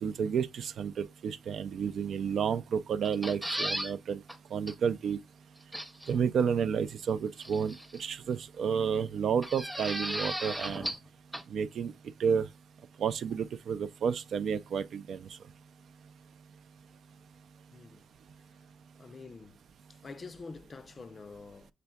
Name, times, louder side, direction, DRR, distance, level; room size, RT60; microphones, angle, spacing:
voice 1, 0.0-4.2 4.5-5.2 6.1-10.9 11.5-11.9 12.2-12.5 13.0-15.3, right 7 dB, 60° right, 0.4 m, -31 dB
sound 1, 3.0-3.9 4.3-4.4 4.7-4.8 5.7-6.1 7.4-8.0 9.4-11.1 11.3-11.4, equal, ahead, 0.7 m, -35 dB
voice 2, 17.7-18.1 19.0-19.6 19.9-21.7, left 4 dB, 35° left, 0.5 m, -47 dB
6.7 x 3.4 x 2.3 m
cardioid pair, 90°, 0 cm